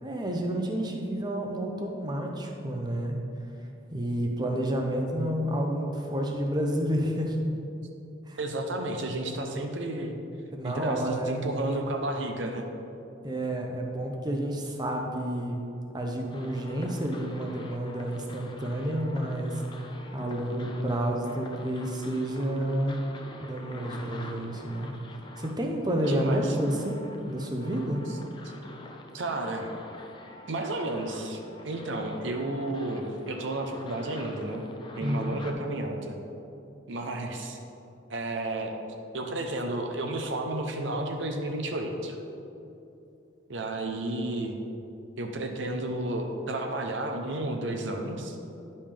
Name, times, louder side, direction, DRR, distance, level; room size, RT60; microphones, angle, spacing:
voice 1, 0.0-3.2 3.9-7.4 8.3-8.4 10.5-11.3 13.2-15.6 15.9-19.6 20.1-23.0 23.4-24.9 25.4-28.0 35.0-35.4, right 1 dB, 20° right, 2 dB, 0.7 m, -30 dB
voice 2, 8.4-10.2 10.6-12.6 26.1-26.6 29.1-29.7 30.5-34.7 35.0-36.2 36.9-37.6 38.1-38.7 39.1-42.2 43.5-44.6 45.2-48.4, right 2 dB, 70° right, 3 dB, 0.7 m, -32 dB
sound 1, 16.3-35.5, left 2 dB, 25° left, 0.5 m, -46 dB
10.5 x 5.4 x 3.4 m, 2.8 s
head